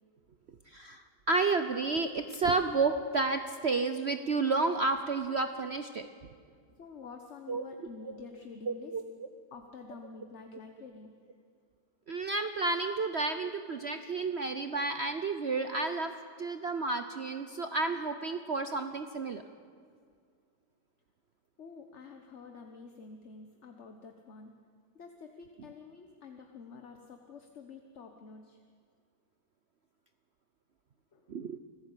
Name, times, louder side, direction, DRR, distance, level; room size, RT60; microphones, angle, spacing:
voice 1, 0.7-6.1 7.5-7.6 8.0-8.2 8.7-9.0 12.1-16.1 16.4-19.4 31.3-31.6, right 3 dB, 60° right, 8 dB, 0.6 m, -31 dB
voice 2, 6.8-8.9 9.5-11.1 21.6-24.5 24.9-28.6 31.1-31.3, left 5 dB, 40° left, 4 dB, 1.3 m, -49 dB
26.0 x 15.0 x 8.4 m, 2.1 s
omnidirectional pair, 2.2 m